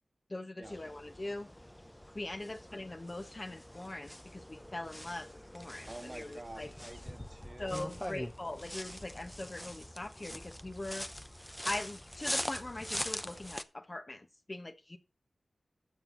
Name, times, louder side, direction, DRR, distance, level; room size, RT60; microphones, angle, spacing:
voice 1, 0.3-1.5 2.1-6.7 7.6-11.1 11.6-15.0, left 2 dB, 35° left, 1.3 m, -41 dB
sound 1, 0.6-13.6, equal, 10° left, 0.9 m, -43 dB
voice 2, 5.9-8.2, right 2 dB, 30° right, 1.9 m, -49 dB
13.5 x 7.8 x 4.0 m
wide cardioid pair, 85°, 0 cm